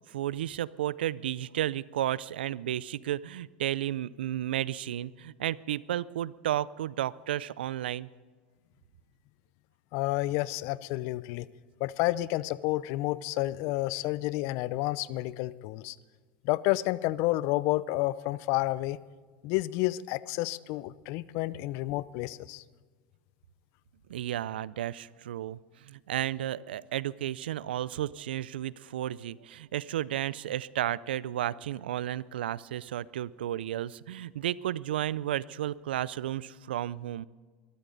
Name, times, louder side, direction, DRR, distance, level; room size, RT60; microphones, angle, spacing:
voice 1, 0.1-8.1 24.1-37.3, right 12 dB, 80° right, 21 dB, 0.5 m, -33 dB
voice 2, 9.9-11.5 11.8-16.0 16.4-19.0 19.4-22.6, left 18 dB, 60° left, 18 dB, 0.6 m, -30 dB
22.0 x 14.0 x 4.0 m, 1.5 s
hypercardioid pair, 90°, 5 cm